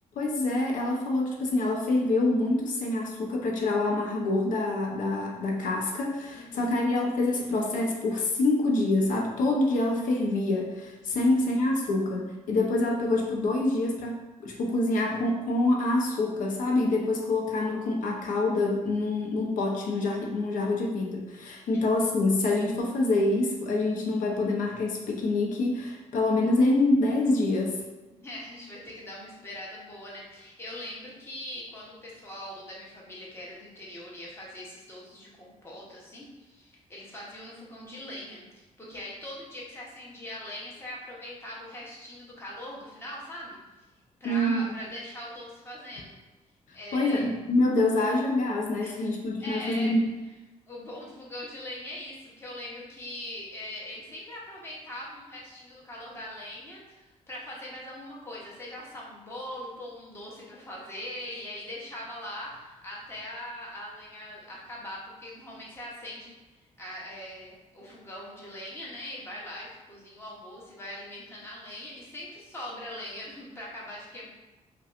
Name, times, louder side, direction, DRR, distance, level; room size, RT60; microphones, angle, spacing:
voice 1, 0.2-27.8 44.2-44.7 46.9-50.0, left 2 dB, 80° left, 0 dB, 0.7 m, -26 dB
voice 2, 6.3-6.9 11.1-11.3 11.6-12.0 21.7-21.8 28.1-43.6 44.2-46.1 46.7-47.3 48.1-48.2 48.8-49.1 49.4-49.9 50.7-74.3, left 1 dB, 20° left, -5 dB, 0.9 m, -41 dB
5.5 x 2.3 x 2.5 m, 1.1 s
wide cardioid pair, 175°, 13 cm